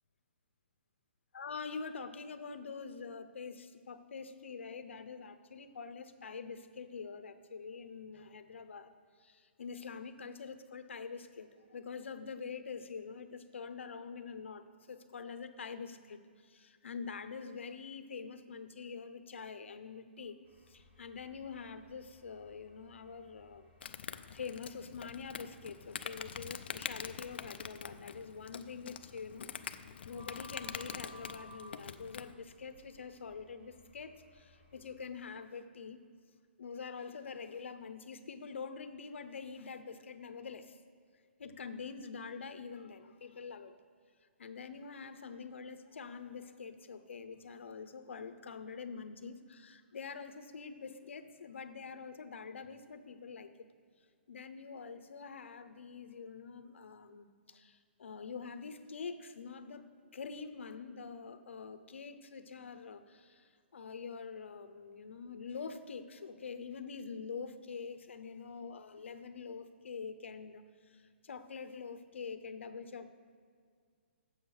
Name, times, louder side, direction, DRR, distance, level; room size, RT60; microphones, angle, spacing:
voice 1, 1.3-8.9 9.2-20.4 20.7-36.0 36.6-40.8 41.4-43.8 44.4-53.7 54.3-73.1, left 5 dB, 80° left, 10 dB, 0.8 m, -45 dB
sound 1, 20.4-35.0, equal, 15° right, 1.1 m, -60 dB
Insect, 23.8-32.3, left 7 dB, 60° left, 0.4 m, -45 dB
7.3 x 7.1 x 6.4 m, 2.1 s
hypercardioid pair, 170°, 6 cm